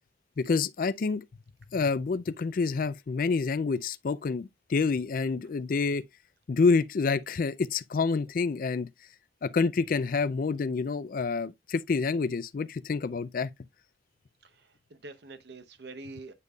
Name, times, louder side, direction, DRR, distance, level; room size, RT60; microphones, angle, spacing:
voice 1, 0.4-1.2 1.7-6.0 6.5-8.9 9.4-13.5, left 4 dB, 50° left, 0.4 m, -28 dB
voice 2, 14.4-16.3, right 3 dB, 65° right, 0.9 m, -46 dB
8.2 x 5.3 x 2.3 m
head